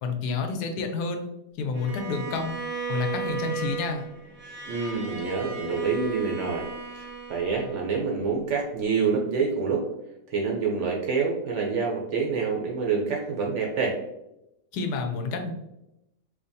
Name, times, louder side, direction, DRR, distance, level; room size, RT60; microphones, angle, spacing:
voice 1, 0.0-1.3 1.6-2.6 2.9-4.1 14.7-15.5, left 4 dB, 90° left, 5 dB, 1.2 m, -29 dB
Bowed string instrument, 1.7-8.0, right 4 dB, 10° right, 0.7 m, -35 dB
voice 2, 4.6-9.8 10.3-14.0, right 5 dB, 70° right, 0 dB, 0.7 m, -27 dB
4.8 x 2.2 x 2.6 m, 0.87 s
omnidirectional pair, 1.7 m